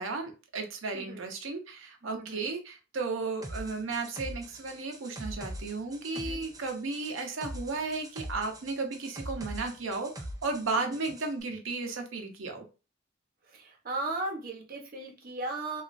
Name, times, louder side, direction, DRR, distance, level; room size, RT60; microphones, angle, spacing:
voice 1, 0.0-12.6, right 3 dB, 80° right, 4 dB, 0.7 m, -34 dB
voice 2, 0.9-1.3 2.0-2.5 6.3-6.4 10.8-10.9 13.5-15.8, right 2 dB, 50° right, 0 dB, 0.8 m, -37 dB
sound 1, 3.4-11.3, right 1 dB, 20° right, 0.4 m, -42 dB
3.0 x 2.4 x 2.5 m, 0.32 s
head